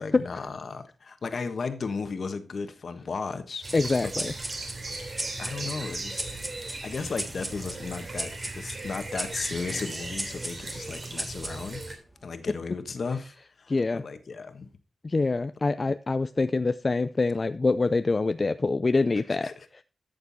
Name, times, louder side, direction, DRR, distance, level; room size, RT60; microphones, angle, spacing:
voice 1, 0.0-3.7 4.0-4.3 5.4-6.4 6.8-11.8 12.2-14.7 19.3-19.7, left 4 dB, 60° left, 1.3 m, -35 dB
sound 1, 3.6-11.9, right 2 dB, 45° right, 3.0 m, -37 dB
voice 2, 3.7-4.3 13.7-14.0 15.0-19.5, left 3 dB, 35° left, 0.4 m, -25 dB
sound 2, 3.7-12.6, right 1 dB, 10° right, 1.4 m, -39 dB
12.5 x 6.8 x 4.1 m
wide cardioid pair, 85°, 0 cm